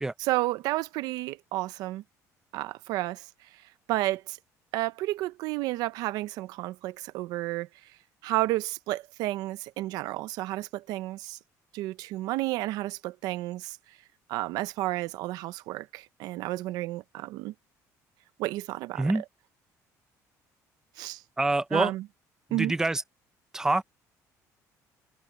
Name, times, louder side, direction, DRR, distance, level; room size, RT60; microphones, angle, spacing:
voice 1, 0.3-2.0 2.5-3.3 3.9-4.4 4.7-7.7 8.2-11.4 11.7-13.8 14.3-17.5 18.4-19.1 21.0-21.2 21.7-22.0 22.5-22.7, right 17 dB, 80° right, 0.7 m, -31 dB
voice 2, 21.4-21.9 22.5-23.0 23.5-23.8, right 2 dB, 10° right, 0.8 m, -26 dB
cardioid pair, 140°, 7 cm